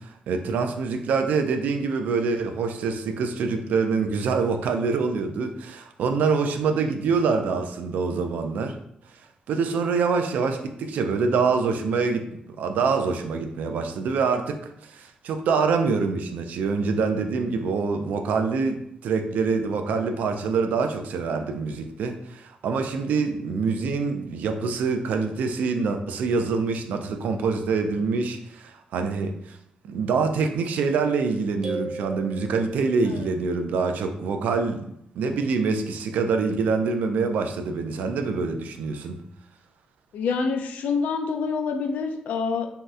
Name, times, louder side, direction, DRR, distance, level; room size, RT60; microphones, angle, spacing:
voice 1, 0.0-8.8 9.5-12.3 12.6-29.6 29.8-39.2, right 4 dB, 90° right, 6 dB, 0.3 m, -25 dB
sound 1, 31.6-33.2, right 2 dB, 25° right, 0.5 m, -36 dB
voice 2, 40.1-42.7, left 5 dB, 85° left, 5 dB, 0.3 m, -27 dB
2.7 x 2.0 x 3.4 m, 0.74 s
wide cardioid pair, 135°, 3 cm